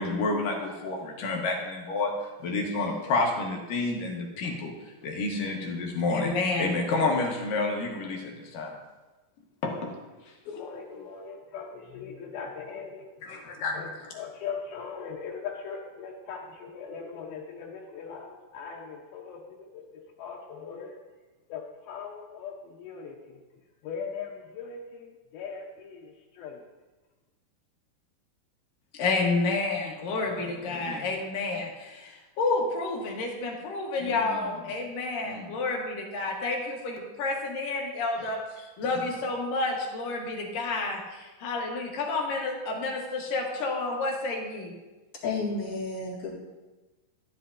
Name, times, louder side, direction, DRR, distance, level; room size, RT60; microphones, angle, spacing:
voice 1, 0.0-2.1 2.4-4.7 5.0-8.8 9.6-9.9 13.2-13.7 14.0-14.1 28.9-44.7, left 3 dB, 70° left, 0 dB, 2.9 m, -29 dB
voice 2, 10.4-13.3 13.6-21.0 21.5-23.4 23.8-26.6, left 6 dB, 85° left, -3 dB, 2.8 m, -40 dB
voice 3, 45.2-46.3, left 3 dB, 45° left, -6 dB, 2.8 m, -31 dB
13.0 x 10.5 x 2.6 m, 1.2 s
omnidirectional pair, 4.2 m